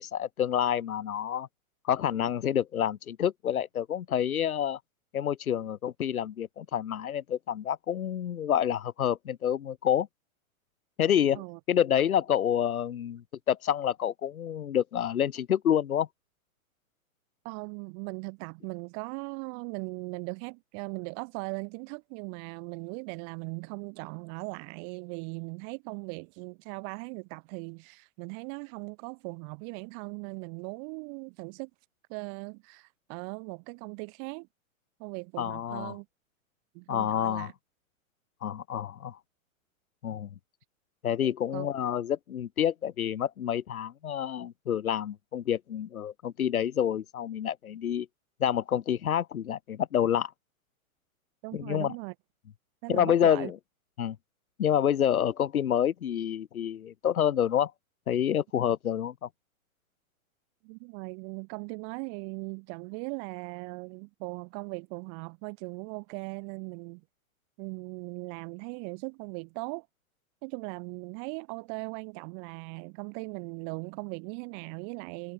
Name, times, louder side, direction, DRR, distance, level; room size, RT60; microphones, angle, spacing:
voice 1, 0.0-1.5 1.8-4.8 5.1-10.1 11.0-16.1 35.4-36.0 36.9-37.5 38.4-39.2 40.0-40.3 41.0-48.1 48.4-50.3 51.5-51.9 52.9-53.6 54.0-54.2 54.6-57.7 58.1-59.3, left 9 dB, 85° left, 3.9 m, -28 dB
voice 2, 17.4-31.7 32.1-34.5 35.0-36.1 36.7-37.5 41.5-41.7 51.4-52.1 52.8-53.5 60.6-67.0 67.6-69.9 70.4-75.3, right 40 dB or more, 40° right, 6.4 m, -39 dB
hypercardioid pair, 150°, 42 cm